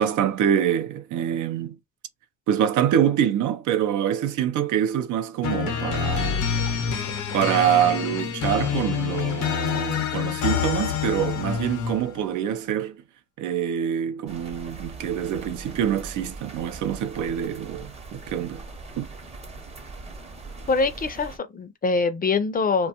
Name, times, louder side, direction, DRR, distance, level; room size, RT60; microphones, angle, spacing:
voice 1, 0.0-1.8 2.5-6.4 7.3-13.0 13.4-18.7 19.0-19.1, right 9 dB, 80° right, 0.5 m, -25 dB
sound 1, 5.4-12.1, left 8 dB, 90° left, 0.7 m, -27 dB
sound 2, 14.3-21.4, right 3 dB, 20° right, 0.6 m, -41 dB
voice 2, 20.7-22.9, left 4 dB, 30° left, 0.4 m, -24 dB
2.5 x 2.2 x 2.8 m
cardioid pair, 90°, 30 cm